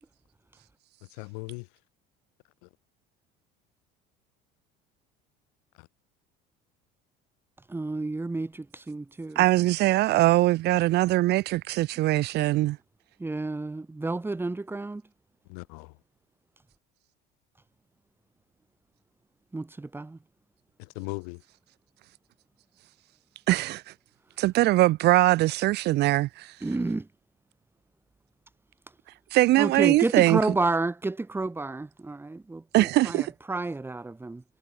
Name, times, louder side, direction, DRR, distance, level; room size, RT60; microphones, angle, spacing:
voice 1, 1.0-1.8 2.6-2.7 5.7-5.9 15.5-16.0 20.8-21.4, left 35 dB, 85° left, 6.0 m, -39 dB
voice 2, 7.7-9.4 13.2-15.0 19.5-20.2 26.6-27.0 29.6-34.4, right 2 dB, 10° right, 2.5 m, -30 dB
voice 3, 9.4-12.8 23.5-23.8 24.4-26.5 29.3-30.4 32.7-33.3, right 17 dB, 60° right, 1.0 m, -22 dB
supercardioid pair, 110°, 20 cm